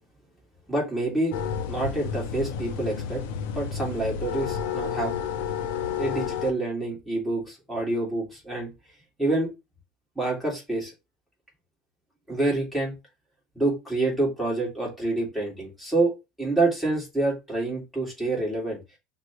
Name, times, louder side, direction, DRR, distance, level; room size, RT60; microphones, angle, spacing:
voice 1, 0.7-1.4 1.7-3.2 3.5-5.1 6.0-8.7 9.2-9.5 10.2-10.9 12.3-13.0 13.6-18.8, right 2 dB, ahead, -4 dB, 2.2 m, -27 dB
sound 1, 1.3-6.5, left 8 dB, 80° left, 0.6 m, -31 dB
5.8 x 2.3 x 3.0 m, 0.25 s
supercardioid pair, 135°, 0 cm